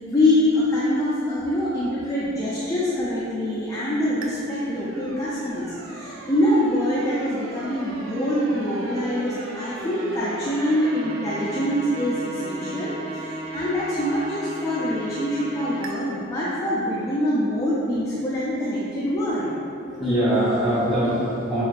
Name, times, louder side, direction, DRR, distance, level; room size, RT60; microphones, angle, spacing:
voice 1, 0.1-19.5, left 1 dB, 15° left, -8 dB, 0.3 m, -24 dB
sound 1, 4.2-15.9, right 2 dB, 75° right, 0.4 m, -36 dB
voice 2, 19.8-21.6, right 1 dB, ahead, -13 dB, 1.0 m, -23 dB
3.3 x 2.3 x 3.2 m, 2.8 s
head